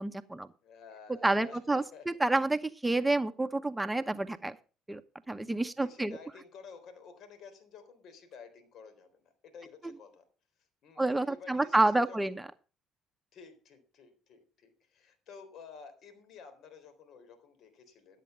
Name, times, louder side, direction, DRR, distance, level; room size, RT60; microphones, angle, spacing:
voice 1, 0.0-0.5 1.2-4.5 4.9-5.0 5.3-6.2 11.0-12.4, right 2 dB, 10° right, 9 dB, 0.9 m, -29 dB
voice 2, 0.6-2.1 5.6-10.2 10.8-12.4 13.3-18.2, left 5 dB, 60° left, 10 dB, 3.9 m, -52 dB
12.0 x 8.4 x 5.7 m, 0.36 s
hypercardioid pair, 50°, 0 cm